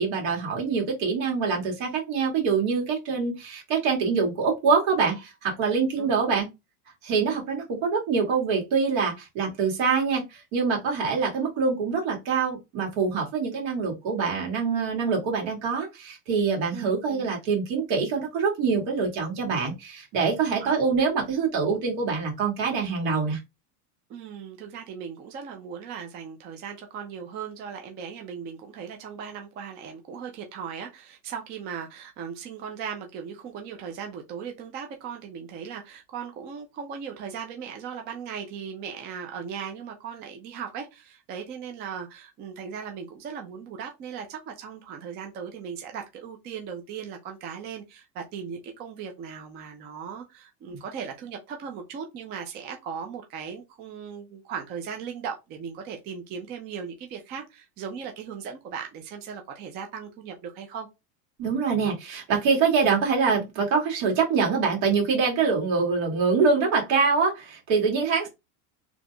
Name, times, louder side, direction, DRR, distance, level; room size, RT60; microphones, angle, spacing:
voice 1, 0.0-6.5 7.0-23.4 61.4-68.3, right 5 dB, 60° right, 1.9 m, -25 dB
voice 2, 16.7-17.3 20.6-20.8 24.1-60.9, right 7 dB, 25° right, 0.3 m, -38 dB
4.0 x 2.9 x 2.3 m
supercardioid pair, 140°, 47 cm